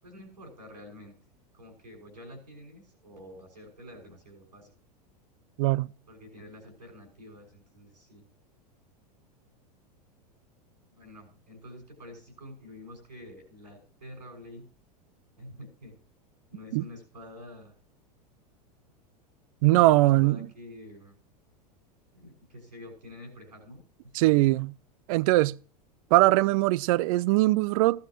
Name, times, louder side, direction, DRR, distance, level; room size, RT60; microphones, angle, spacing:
voice 1, 0.0-1.2 1.5-4.7 6.1-8.3 10.9-14.6 15.4-16.0 16.5-17.7 19.6-21.2 22.1-23.8 24.2-24.3, left 1 dB, 90° right, 6.3 m, -48 dB
voice 2, 19.6-20.5 24.1-24.7 25.1-25.6 26.1-28.1, right 18 dB, 55° right, 0.5 m, -21 dB
16.0 x 12.0 x 3.1 m
hypercardioid pair, 95°, 21 cm